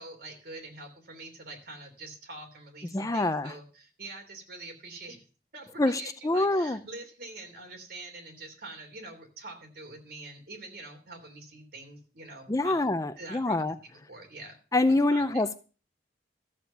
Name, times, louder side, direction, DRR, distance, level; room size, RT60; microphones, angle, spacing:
voice 1, 0.0-5.2 5.5-13.7 14.1-14.6 15.1-15.4, right 2 dB, 60° right, 4 dB, 3.3 m, -45 dB
voice 2, 2.9-3.5 5.8-6.8 12.5-13.7 14.7-15.6, left 2 dB, 20° left, 12 dB, 0.5 m, -26 dB
13.5 x 7.4 x 5.6 m, 0.36 s
head